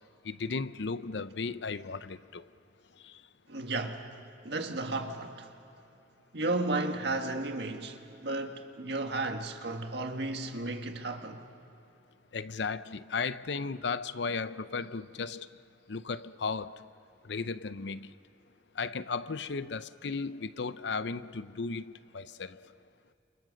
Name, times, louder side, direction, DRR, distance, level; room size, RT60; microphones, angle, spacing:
voice 1, 0.2-2.4 3.0-3.1 12.3-15.5 15.9-16.8 17.3-18.1 18.8-22.6, left 4 dB, 70° left, 0.6 m, -35 dB
voice 2, 3.5-4.1 4.4-5.5 6.3-11.4, right 2 dB, 65° right, 1.8 m, -33 dB
29.5 x 28.0 x 6.5 m
head